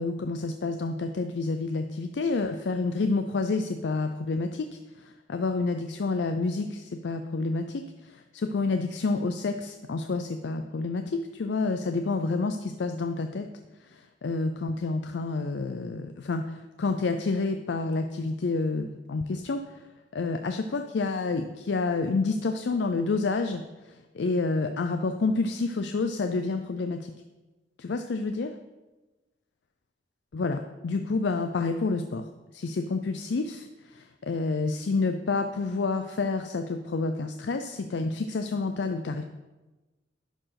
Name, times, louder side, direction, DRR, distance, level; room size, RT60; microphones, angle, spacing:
voice 1, 0.0-13.5 13.8-19.9 20.1-27.1 27.8-28.5 30.3-32.3 32.5-39.2, left 3 dB, 70° left, 7 dB, 0.5 m, -29 dB
11.5 x 4.7 x 5.8 m, 1.2 s
head